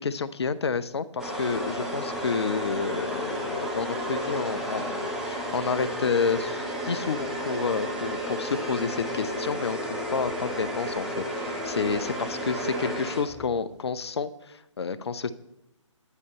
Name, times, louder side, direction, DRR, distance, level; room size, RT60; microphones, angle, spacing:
voice 1, 0.0-15.3, left 5 dB, 55° left, 14 dB, 0.6 m, -30 dB
sound 1, 1.2-13.6, equal, ahead, 1.4 m, -32 dB
11.0 x 9.9 x 4.3 m, 0.86 s
figure-of-eight pair, 140°, 16 cm